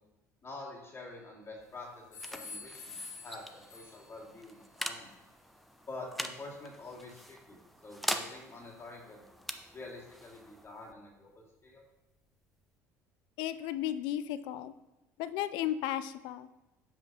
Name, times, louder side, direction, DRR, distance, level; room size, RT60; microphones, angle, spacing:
voice 1, 0.4-1.9 2.3-5.2 5.9-9.2 9.7-11.8, left 2 dB, 30° left, -3 dB, 2.1 m, -47 dB
sound 1, 0.9-1.6 2.1-4.3, left 3 dB, 90° left, 1.6 m, -48 dB
sound 2, 1.4-12.8, equal, ahead, 0.6 m, -43 dB
voice 2, 13.4-14.7 15.2-16.5, left 12 dB, 65° left, 13 dB, 0.4 m, -34 dB
7.4 x 5.5 x 2.8 m, 0.97 s
hypercardioid pair, 65°, 8 cm